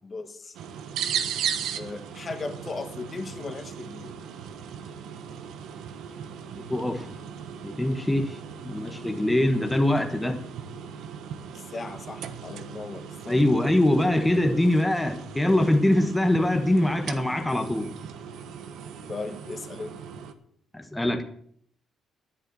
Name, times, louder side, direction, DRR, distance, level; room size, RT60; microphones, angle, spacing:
voice 1, 0.0-0.5 1.8-4.2 11.5-13.4 19.1-20.0, left 3 dB, 35° left, 8 dB, 1.6 m, -37 dB
sound 1, 0.5-20.3, right 8 dB, 80° right, 1.2 m, -37 dB
voice 2, 6.6-7.1 7.6-8.4 8.6-10.4 13.3-17.9 20.7-21.2, left 1 dB, 10° left, 5 dB, 1.4 m, -23 dB
10.5 x 9.9 x 7.7 m, 0.64 s
cardioid pair, 90°, 0 cm